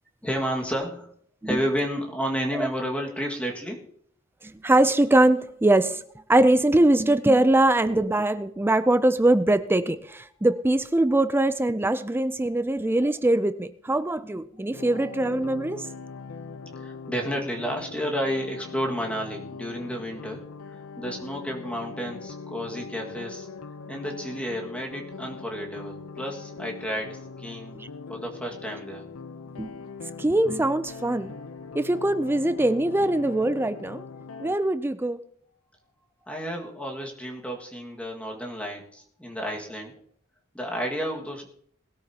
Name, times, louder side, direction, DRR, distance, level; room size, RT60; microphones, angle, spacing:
voice 1, 0.2-1.1 1.5-3.8 16.3-23.5 23.9-27.7 28.1-29.0 36.3-39.9 40.5-41.5, equal, 5° left, 0 dB, 1.9 m, -31 dB
voice 2, 4.4-6.0 6.3-15.9 27.7-27.9 29.6-29.7 30.2-31.3 31.7-34.0 34.4-35.2, right 1 dB, 10° right, 12 dB, 0.4 m, -22 dB
sound 1, 14.7-34.6, left 4 dB, 80° left, 0.7 m, -41 dB
20.5 x 12.5 x 2.9 m, 0.64 s
head